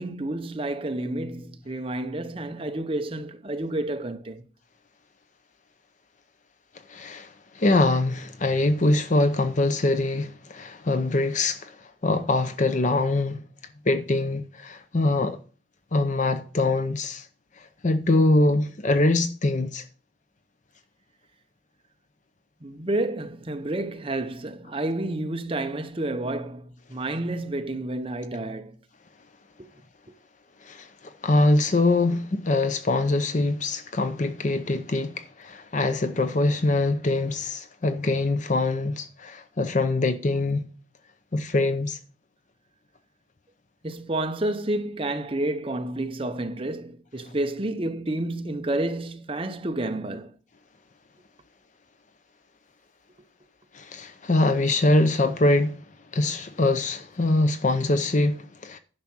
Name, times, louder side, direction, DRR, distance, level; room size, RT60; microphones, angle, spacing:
voice 1, 0.0-4.4 22.6-28.8 29.6-29.7 43.8-50.3, right 1 dB, 25° right, 0.8 m, -30 dB
voice 2, 6.9-13.4 13.9-15.4 15.9-17.3 17.6-19.8 30.6-40.6 41.3-42.0 53.7-55.8 56.1-58.8, left 2 dB, 40° left, 0.6 m, -23 dB
10.5 x 5.8 x 6.1 m
head